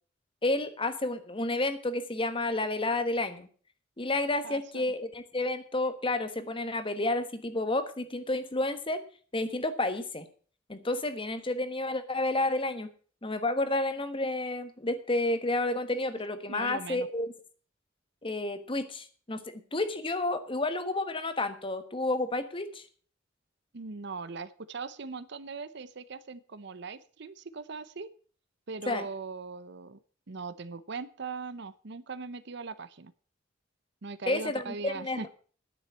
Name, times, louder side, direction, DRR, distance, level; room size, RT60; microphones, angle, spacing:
voice 1, 0.4-3.5 4.0-9.0 9.3-10.3 10.7-12.9 13.2-17.3 18.2-22.8 28.9-29.0 34.3-35.3, left 2 dB, 25° left, 11 dB, 1.2 m, -30 dB
voice 2, 4.4-4.8 16.5-17.1 23.7-28.1 28.7-30.0 30.3-33.1 34.0-35.3, right 4 dB, 60° right, 14 dB, 0.7 m, -40 dB
10.0 x 7.4 x 8.1 m, 0.44 s
head